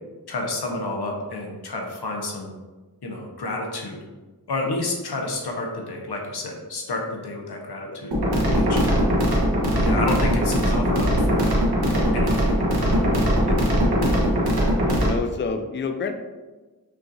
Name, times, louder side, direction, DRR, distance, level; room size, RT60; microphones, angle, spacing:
voice 1, 0.3-2.5 3.0-4.0 4.5-8.1 8.5-11.5 12.1-12.5 12.8-13.1 14.9-15.0, left 2 dB, 70° left, 0 dB, 0.9 m, -30 dB
sound 1, 8.1-15.1, equal, 65° right, 1.1 m, -20 dB
voice 2, 13.5-14.3 15.0-16.1, left 4 dB, 30° left, 6 dB, 0.4 m, -30 dB
5.7 x 2.4 x 2.6 m, 1.3 s
wide cardioid pair, 60°, 40 cm